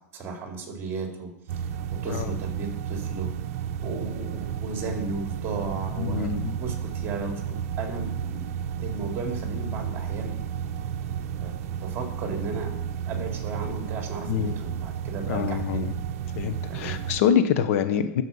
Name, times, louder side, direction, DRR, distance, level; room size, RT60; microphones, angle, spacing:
voice 1, 0.1-3.3 3.8-6.3 6.6-8.5 8.8-10.3 11.4-16.0 16.7-17.0, right 3 dB, 25° right, 1 dB, 3.9 m, -35 dB
sound 1, 1.5-17.2, right 8 dB, 60° right, 0.8 m, -32 dB
voice 2, 6.0-6.5 14.3-14.5 15.3-15.9 16.4-18.2, left 8 dB, 60° left, 9 dB, 1.1 m, -25 dB
13.0 x 7.2 x 5.7 m, 0.82 s
hypercardioid pair, 130°, 8 cm